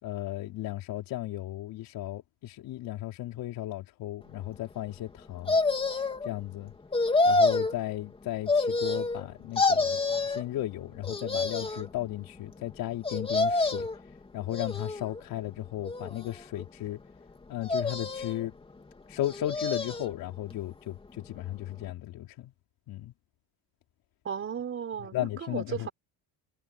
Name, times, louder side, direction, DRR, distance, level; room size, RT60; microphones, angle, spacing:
voice 1, 0.0-5.6 6.3-6.7 7.2-13.9 14.3-17.0 17.5-18.5 19.1-22.5 22.9-23.1 25.1-25.9, left 14 dB, 55° left, 4.0 m, -35 dB
sound 1, 5.5-6.3 6.9-7.7 8.5-9.3 9.6-10.4 11.0-11.9 13.0-14.0 14.5-15.2 15.8-16.6 17.6-18.5 19.2-20.1 20.5-20.6, left 3 dB, 15° left, 2.9 m, -27 dB
voice 2, 24.2-25.9, right 7 dB, 30° right, 5.4 m, -35 dB
cardioid pair, 150°, 41 cm